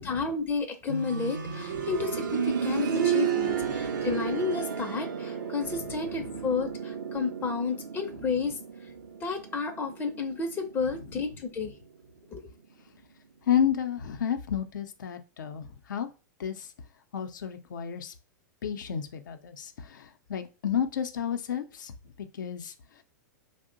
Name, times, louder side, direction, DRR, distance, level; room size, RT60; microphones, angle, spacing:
voice 1, 0.0-8.6 9.2-11.7 12.3-12.5, left 5 dB, 20° left, 7 dB, 0.5 m, -31 dB
sound 1, 0.9-11.7 13.0-13.1, right 7 dB, 85° right, 0.5 m, -32 dB
voice 2, 13.5-16.1 16.4-16.7 17.1-18.1 18.6-21.9 22.4-22.7, left 9 dB, 80° left, 8 dB, 0.5 m, -31 dB
2.8 x 2.1 x 3.7 m, 0.33 s
hypercardioid pair, 120°, 10 cm